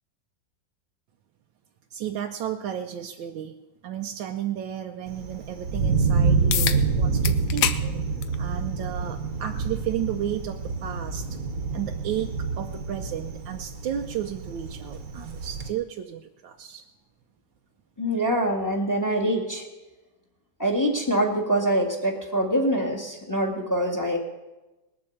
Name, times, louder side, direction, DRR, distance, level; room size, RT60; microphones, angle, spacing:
voice 1, 1.9-3.6 3.8-7.8 8.4-11.4 11.7-16.9, right 10 dB, 80° right, 3 dB, 1.4 m, -33 dB
Thunder, 5.1-15.7, right 4 dB, 55° right, 1.4 m, -27 dB
sound 1, 6.5-6.8 7.2-7.8 8.2-8.4 9.4-9.5 14.5-14.6, left 10 dB, 65° left, 1.2 m, -25 dB
voice 2, 18.0-19.7 20.6-24.2, right 1 dB, 10° left, 1 dB, 1.8 m, -24 dB
20.0 x 7.6 x 7.1 m, 1.1 s
omnidirectional pair, 2.1 m